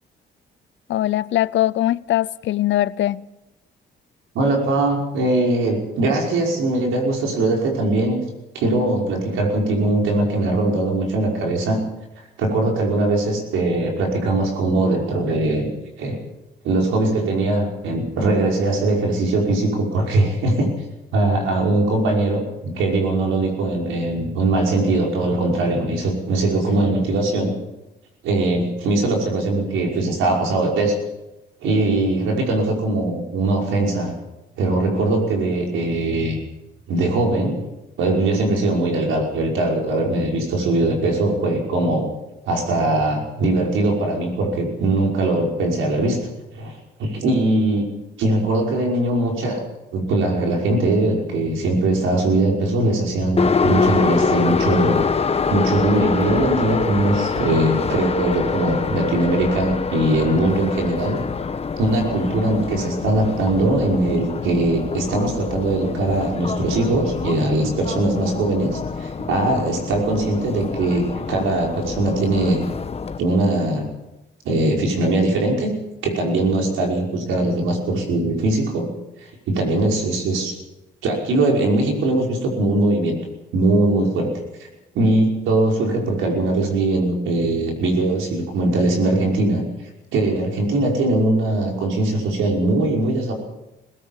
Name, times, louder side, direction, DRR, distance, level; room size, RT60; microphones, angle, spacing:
voice 1, 0.9-3.2, left 14 dB, 70° left, 0.6 m, -21 dB
voice 2, 4.3-8.2 8.5-11.8 12.4-15.7 16.0-16.2 16.6-20.7 21.1-27.5 28.2-31.0 31.6-34.1 34.6-36.4 36.9-37.6 38.0-42.1 42.5-46.2 46.6-46.7 47.0-47.9 48.2-49.6 49.9-55.1 55.5-61.2 61.8-72.7 73.2-73.9 74.5-75.7 76.0-78.9 79.5-80.5 81.0-83.2 83.5-84.4 84.9-89.6 90.1-93.3, right 2 dB, 90° right, 5.6 m, -21 dB
Subway metro underground, 53.4-73.2, left 5 dB, 30° left, 1.2 m, -25 dB
20.0 x 17.5 x 7.4 m
cardioid pair, 90°, 20 cm